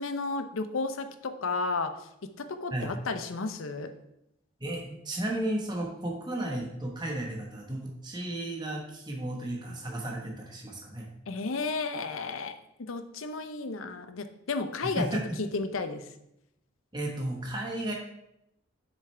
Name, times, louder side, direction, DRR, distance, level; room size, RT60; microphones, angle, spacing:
voice 1, 0.0-1.9 2.2-3.9 11.3-15.1 15.4-16.1, left 3 dB, 80° left, 9 dB, 0.7 m, -33 dB
voice 2, 4.6-11.1 15.0-15.3 16.9-17.9, right 1 dB, 20° right, -1 dB, 1.3 m, -33 dB
7.3 x 6.7 x 3.4 m, 0.81 s
head